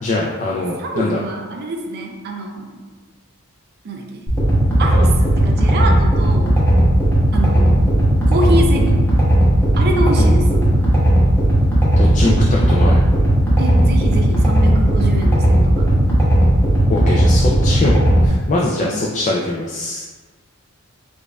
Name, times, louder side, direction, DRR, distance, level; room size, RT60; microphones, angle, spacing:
voice 1, 0.0-1.2 12.0-13.0 16.9-20.1, left 2 dB, 35° left, -3 dB, 0.3 m, -22 dB
voice 2, 0.8-2.9 3.8-4.3 4.8-6.5 7.3-9.0 9.8-10.9 13.6-16.2 18.8-19.0, right 1 dB, 50° right, 2 dB, 0.4 m, -25 dB
sound 1, 4.3-18.3, right 1 dB, 10° left, 0.9 m, -15 dB
5.0 x 2.5 x 2.2 m, 1.3 s
head